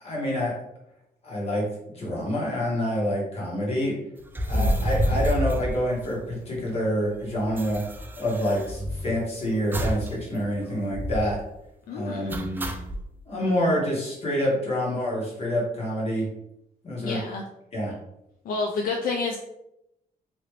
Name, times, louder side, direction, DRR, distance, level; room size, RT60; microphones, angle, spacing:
voice 1, 0.0-0.5 1.2-4.0 4.5-7.8 8.2-11.4 11.9-12.7 13.3-16.3 16.8-17.2 17.7-17.9, equal, 40° left, -4 dB, 1.4 m, -27 dB
sound 1, 4.3-6.5 6.8-6.9 7.1-9.2 9.7-10.1 10.4-10.5 10.9-11.4 12.3-13.0, equal, 15° right, 0.3 m, -28 dB
voice 2, 4.5-5.2 11.9-12.4 17.0-17.4 18.4-19.4, left 4 dB, 70° left, 1 dB, 0.4 m, -30 dB
3.0 x 2.5 x 3.2 m, 0.84 s
cardioid pair, 125°, 15 cm